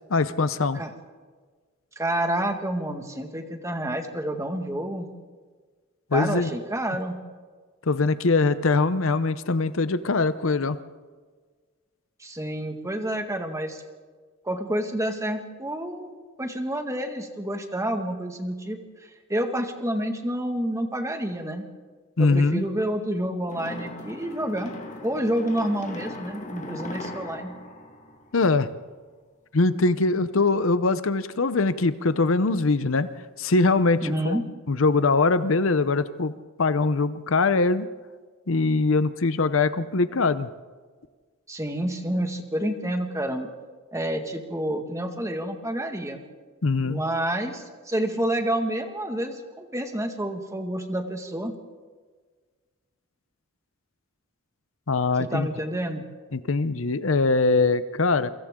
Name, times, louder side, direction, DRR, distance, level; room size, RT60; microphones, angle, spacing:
voice 1, 0.1-0.8 6.1-6.5 7.9-10.8 22.2-22.6 28.3-28.7 29.5-33.1 33.4-34.4 34.7-36.3 36.6-37.9 38.5-40.5 46.6-47.0 54.9-55.5 56.3-58.3, left 3 dB, 70° left, 13 dB, 0.8 m, -22 dB
voice 2, 2.0-5.1 6.1-7.2 12.2-13.8 14.4-16.1 16.4-18.8 19.3-21.7 22.2-24.7 25.0-27.5 34.0-34.4 41.5-43.5 43.9-46.2 46.9-51.5 55.2-56.0, right 1 dB, 15° right, 4 dB, 1.9 m, -29 dB
sound 1, 23.5-28.8, left 2 dB, 35° left, 1.8 m, -39 dB
28.0 x 24.5 x 3.8 m, 1.5 s
head